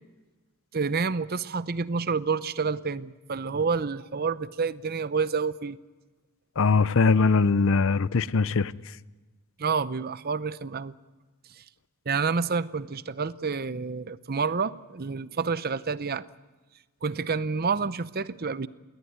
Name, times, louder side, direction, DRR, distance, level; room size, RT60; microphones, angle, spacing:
voice 1, 0.7-5.8 9.6-10.9 12.1-16.2 17.0-18.7, right 5 dB, 45° right, 0.7 m, -28 dB
voice 2, 6.6-8.7, left 4 dB, 60° left, 0.6 m, -21 dB
21.0 x 18.5 x 9.3 m
head